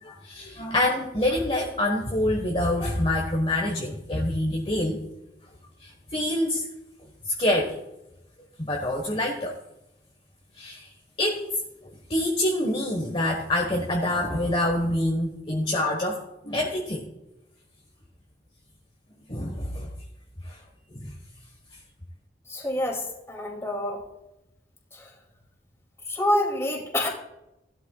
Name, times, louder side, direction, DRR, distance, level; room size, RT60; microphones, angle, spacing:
voice 1, 0.0-5.0 5.8-6.7 7.2-7.8 8.6-9.6 10.6-10.9 11.2-11.4 12.1-17.1 19.3-19.9 20.4-20.6 20.9-21.1, left 1 dB, 30° left, 0 dB, 1.3 m, -26 dB
voice 2, 22.5-24.0 24.9-25.2 26.0-27.1, left 1 dB, 15° left, 0 dB, 2.5 m, -27 dB
16.5 x 12.0 x 2.3 m, 0.90 s
head